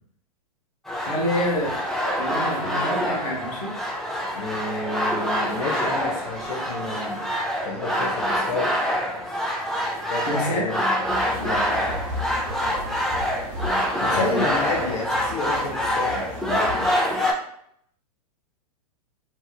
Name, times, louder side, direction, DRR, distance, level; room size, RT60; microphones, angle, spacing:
sound 1, 0.9-17.3, equal, ahead, 0.3 m, -26 dB
voice 1, 1.0-1.8 2.2-3.7 10.2-10.6 14.1-14.5, equal, 50° left, -2 dB, 1.3 m, -27 dB
voice 2, 4.3-7.3 7.6-8.9 10.1-10.9 11.4-11.8 14.0-16.8, left 2 dB, 70° left, -3 dB, 0.6 m, -30 dB
sound 2, 11.0-17.0, left 1 dB, 35° right, 1.0 m, -36 dB
2.8 x 2.4 x 2.2 m, 0.69 s
hypercardioid pair, 115°, 20 cm